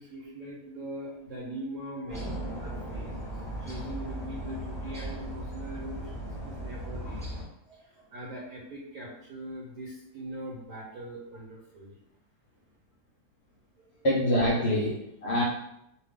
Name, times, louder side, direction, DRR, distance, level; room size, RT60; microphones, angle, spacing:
voice 1, 0.0-7.5 7.8-12.0 13.8-14.1, right 1 dB, 70° right, -5 dB, 1.3 m, -41 dB
sound 1, 2.1-7.4, right 1 dB, ahead, 0.9 m, -37 dB
voice 2, 14.0-15.4, equal, 65° left, -5 dB, 0.6 m, -25 dB
2.8 x 2.3 x 3.5 m, 0.79 s
omnidirectional pair, 1.7 m